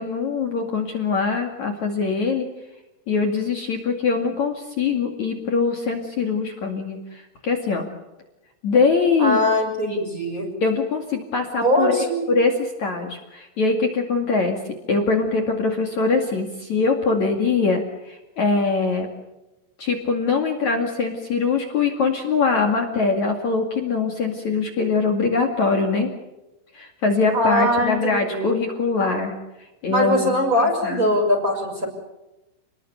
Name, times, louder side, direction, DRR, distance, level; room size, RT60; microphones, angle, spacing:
voice 1, 0.0-2.5 3.1-7.9 8.6-9.4 9.9-10.0 10.6-14.6 14.9-19.1 19.8-26.1 26.7-29.3 29.8-30.3 30.8-31.1, left 4 dB, 45° left, 3 dB, 2.7 m, -22 dB
voice 2, 9.2-10.5 11.6-12.3 27.3-28.5 29.9-31.9, equal, 15° right, 2 dB, 6.2 m, -21 dB
29.5 x 21.0 x 6.9 m, 0.97 s
omnidirectional pair, 6.0 m